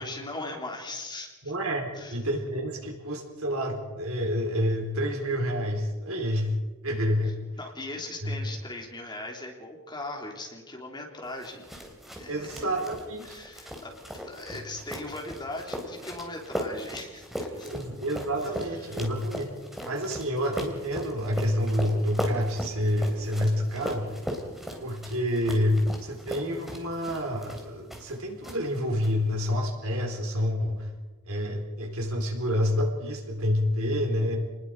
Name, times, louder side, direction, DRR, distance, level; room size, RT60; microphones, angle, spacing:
voice 1, 0.0-1.3 2.0-2.2 7.2-11.7 12.2-12.6 13.2-13.9 14.2-17.7 18.6-19.0, left 2 dB, 20° left, 0 dB, 3.4 m, -39 dB
voice 2, 1.4-6.5 6.8-7.4 8.2-8.4 12.3-13.4 17.6-19.5 19.9-24.1 24.8-30.9 31.3-34.4, equal, 75° right, 2 dB, 4.4 m, -28 dB
sound 1, 11.4-28.2 28.4-29.1, equal, ahead, 3.3 m, -38 dB
28.5 x 20.5 x 4.9 m, 1.2 s
head